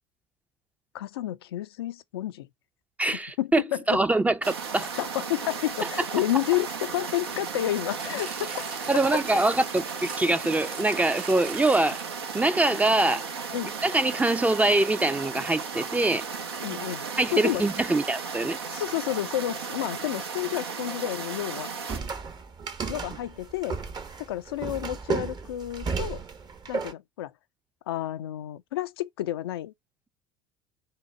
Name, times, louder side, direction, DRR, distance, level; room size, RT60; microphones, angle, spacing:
voice 1, 0.9-2.5 3.4-4.0 5.0-8.7 9.1-9.2 13.5-13.7 16.6-17.7 18.7-21.7 22.9-23.8 24.2-26.2 26.7-27.3 27.9-29.7, left 14 dB, 70° left, 0.4 m, -30 dB
voice 2, 3.0-3.6 3.9-4.9 8.9-12.0 12.3-13.3 13.8-16.3 17.2-18.6, right 2 dB, 10° right, 0.5 m, -24 dB
sound 1, 4.4-22.0, right 5 dB, 75° right, 0.7 m, -35 dB
sound 2, 7.9-12.3 13.1-13.2, right 5 dB, 60° right, 1.3 m, -41 dB
sound 3, 21.9-26.9, right 5 dB, 35° right, 0.8 m, -33 dB
5.7 x 2.1 x 4.2 m
figure-of-eight pair, 65°, 13 cm